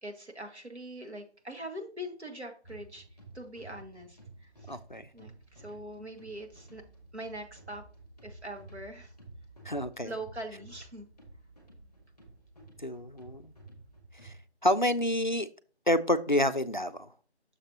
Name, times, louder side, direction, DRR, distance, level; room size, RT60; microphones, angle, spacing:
voice 1, 0.0-3.1 3.3-4.8 5.1-6.8 7.1-7.8 8.2-9.1 10.0-11.1, right 1 dB, 75° right, 4 dB, 1.9 m, -42 dB
sound 1, 2.6-14.4, right 2 dB, 5° right, 1.3 m, -52 dB
voice 2, 4.7-5.1 9.7-10.1 12.8-13.5 14.2-14.3 14.6-15.5 15.9-17.1, left 1 dB, 45° left, 9 dB, 0.4 m, -28 dB
7.1 x 6.7 x 2.8 m, 0.39 s
figure-of-eight pair, 160°, 34 cm